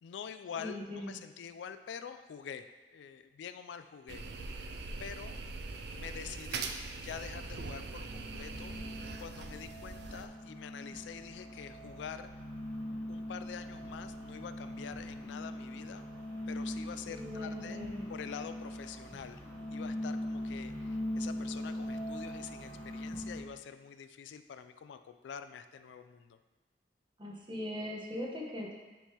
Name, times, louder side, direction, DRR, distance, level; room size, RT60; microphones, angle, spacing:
voice 1, 0.0-4.7 5.0-5.4 5.9-12.3 13.1-16.0 16.5-17.8 18.1-19.4 19.7-26.4, left 7 dB, 85° left, 10 dB, 0.3 m, -46 dB
voice 2, 0.6-1.2 17.1-18.1 27.2-28.7, left 1 dB, 30° right, -2 dB, 1.1 m, -40 dB
sound 1, 4.1-10.3, right 4 dB, 65° right, 0.4 m, -42 dB
sound 2, 6.9-23.4, left 1 dB, 10° left, 1.3 m, -41 dB
9.6 x 3.7 x 2.9 m, 1.2 s
head